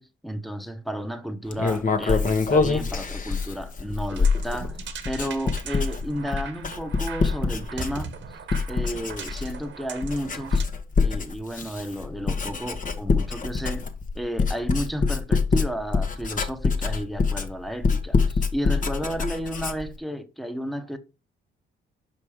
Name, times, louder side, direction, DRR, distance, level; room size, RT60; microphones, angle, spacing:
voice 1, 0.0-4.8 5.0-8.1 8.7-10.6 11.0-13.9 14.1-21.0, equal, ahead, 1.1 m, -32 dB
Writing, 1.5-8.2 8.5-9.7 10.0-20.0, left 4 dB, 40° left, 1.3 m, -25 dB
sound 1, 4.1-10.6, right 7 dB, 70° right, 1.3 m, -40 dB
6.1 x 5.3 x 5.0 m
cardioid pair, 90°, 20 cm